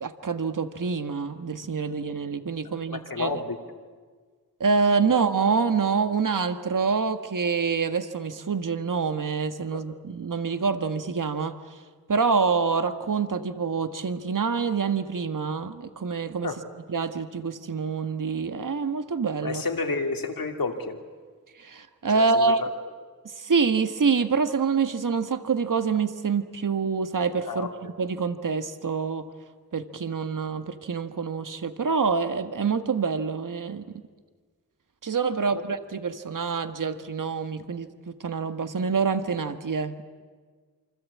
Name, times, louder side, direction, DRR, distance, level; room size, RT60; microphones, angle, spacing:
voice 1, 0.0-3.3 4.6-11.5 12.1-16.5 16.9-19.6 21.6-22.6 23.4-27.7 28.0-29.2 29.7-33.8 35.0-40.0, right 5 dB, 65° right, 9 dB, 1.5 m, -26 dB
voice 2, 2.9-3.6 5.0-5.1 9.7-9.8 16.4-16.6 19.4-21.0 22.1-22.7 27.5-27.9 35.5-35.8, left 3 dB, 80° left, 5 dB, 2.8 m, -31 dB
27.5 x 25.5 x 8.6 m, 1.5 s
wide cardioid pair, 60°, 35 cm